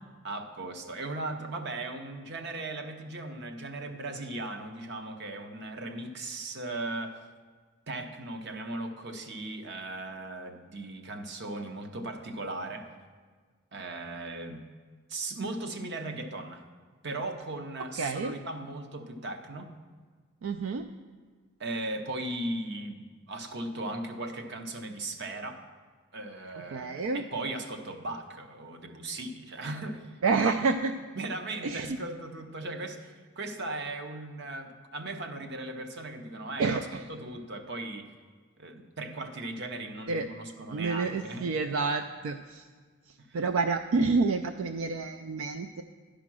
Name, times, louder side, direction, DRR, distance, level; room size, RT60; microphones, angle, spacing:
voice 1, 0.2-7.2 7.9-12.9 13.7-14.7 15.1-16.6 17.0-19.7 21.6-25.6 26.1-30.2 31.1-38.1 38.6-41.5 43.2-43.4, right 2 dB, 55° right, 6 dB, 0.8 m, -37 dB
voice 2, 18.0-18.3 20.4-20.9 26.7-27.2 30.2-30.9 31.6-32.0 36.6-37.0 40.1-40.3 40.7-42.7 43.3-45.8, right 4 dB, 75° right, 7 dB, 0.4 m, -28 dB
11.5 x 5.1 x 6.1 m, 1.5 s
head